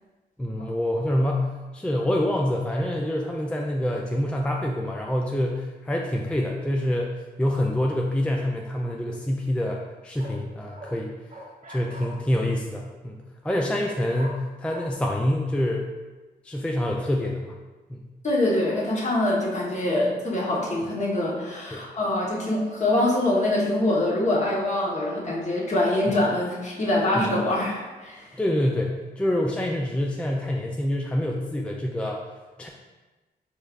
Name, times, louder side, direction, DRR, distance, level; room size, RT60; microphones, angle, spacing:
voice 1, 0.4-11.1 11.7-15.9 16.4-17.5 17.9-18.0 21.7-21.8 26.1-26.2 27.2-27.3 28.3-32.3 32.6-32.7, left 1 dB, 5° left, 0 dB, 0.4 m, -26 dB
sound 1, 9.8-9.9 10.2-10.4 10.8-11.0 11.3-12.1 14.2-14.4 14.7-14.8, equal, 50° right, 0.9 m, -41 dB
voice 2, 18.2-28.3, left 1 dB, 45° left, -4 dB, 1.2 m, -24 dB
4.5 x 3.4 x 2.5 m, 1.2 s
cardioid pair, 60°, 17 cm